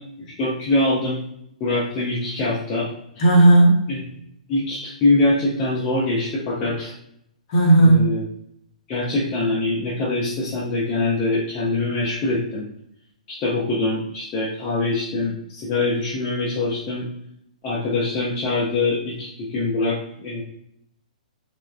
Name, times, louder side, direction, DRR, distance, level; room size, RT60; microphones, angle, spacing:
voice 1, 0.4-1.2 1.6-2.9 3.9-4.0 4.5-6.9 7.8-8.2 8.9-12.7 13.3-17.1 17.6-20.4, left 2 dB, 25° left, -6 dB, 0.6 m, -23 dB
voice 2, 3.2-4.0 7.5-8.1, right 2 dB, 45° left, -2 dB, 0.9 m, -14 dB
3.3 x 2.2 x 2.2 m, 0.75 s
figure-of-eight pair, 120°, 4 cm